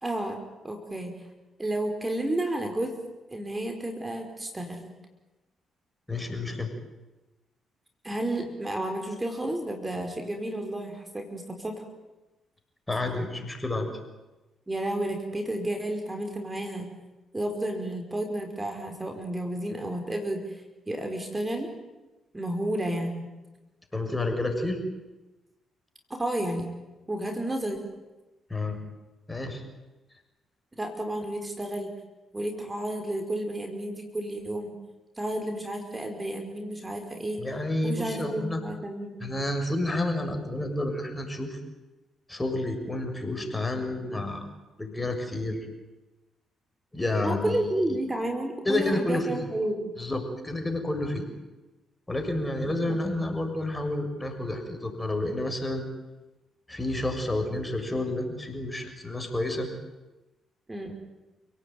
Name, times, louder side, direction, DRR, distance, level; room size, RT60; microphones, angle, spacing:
voice 1, 0.0-1.1 1.6-2.9 3.3-4.9 8.0-11.9 14.7-16.9 17.3-21.7 22.3-23.3 26.1-26.7 27.1-27.8 30.8-31.9 32.3-34.7 35.2-37.4 37.8-39.3 47.2-49.9 52.6-52.9 60.7-61.0, right 1 dB, 20° right, 4 dB, 5.0 m, -31 dB
voice 2, 6.1-6.7 12.9-13.9 23.9-24.8 28.5-28.8 29.3-29.6 37.4-38.6 39.2-41.6 42.3-44.5 44.8-45.7 46.9-47.6 48.7-49.4 50.0-51.3 52.1-55.9 56.7-59.7, left 1 dB, 15° left, 5 dB, 6.8 m, -30 dB
29.5 x 18.0 x 9.4 m, 1.1 s
hypercardioid pair, 50°, 0 cm